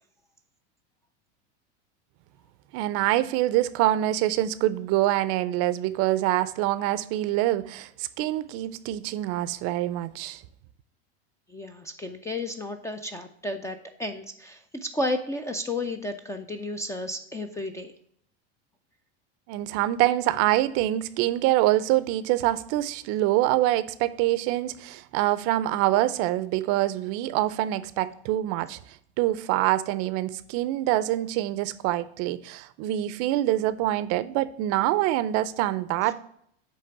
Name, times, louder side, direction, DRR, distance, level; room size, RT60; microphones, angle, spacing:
voice 1, 2.7-10.4 19.5-28.8 29.2-36.2, right 15 dB, 45° right, 0.5 m, -25 dB
voice 2, 11.5-17.9 36.0-36.1, left 2 dB, 10° left, 0.3 m, -32 dB
8.4 x 3.3 x 5.6 m
supercardioid pair, 130°, 33 cm